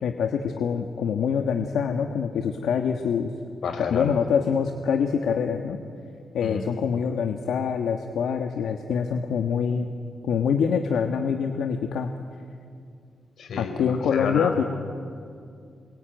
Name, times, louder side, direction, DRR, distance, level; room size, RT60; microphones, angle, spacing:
voice 1, 0.0-3.3 3.8-5.8 6.3-9.9 10.3-12.1 13.6-14.6, left 7 dB, 90° left, 5 dB, 1.5 m, -25 dB
voice 2, 3.6-4.1 6.4-6.6 13.4-14.5, left 5 dB, 70° left, 5 dB, 4.5 m, -30 dB
28.0 x 22.5 x 9.2 m, 2.3 s
wide cardioid pair, 135°, 0 cm